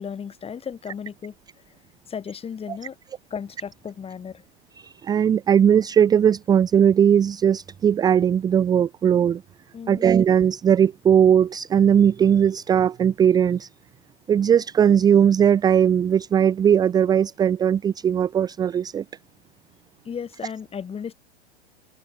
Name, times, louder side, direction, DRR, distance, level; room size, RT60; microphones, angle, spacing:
voice 1, 0.0-1.3 2.1-3.0 3.3-4.4 9.7-10.1 20.0-21.1, left 7 dB, 15° left, 4.4 m, -34 dB
voice 2, 4.8-9.4 9.9-13.7 14.3-19.0, right 8 dB, 10° right, 0.6 m, -19 dB
open air
figure-of-eight pair, 105°, 33 cm